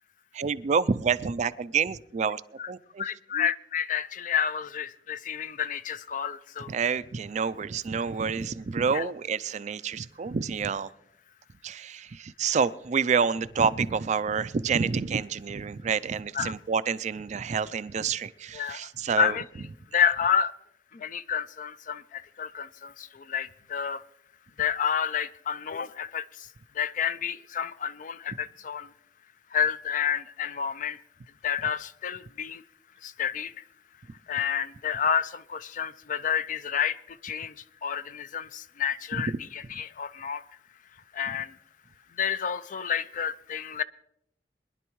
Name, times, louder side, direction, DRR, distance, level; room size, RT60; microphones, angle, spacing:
voice 1, 0.3-2.4 2.7-3.0 3.3-3.5 6.7-10.9 11.6-19.3 39.1-39.2, right 6 dB, 40° right, 0.4 m, -28 dB
voice 2, 3.0-6.7 8.9-9.1 16.3-16.5 18.5-18.9 19.2-19.4 19.9-20.6 20.9-24.0 24.6-26.5 26.7-28.9 29.5-31.0 31.4-32.6 33.0-33.6 34.3-40.4 41.1-41.6 42.1-43.8, left 8 dB, 50° left, 0.4 m, -30 dB
22.5 x 11.0 x 3.1 m
head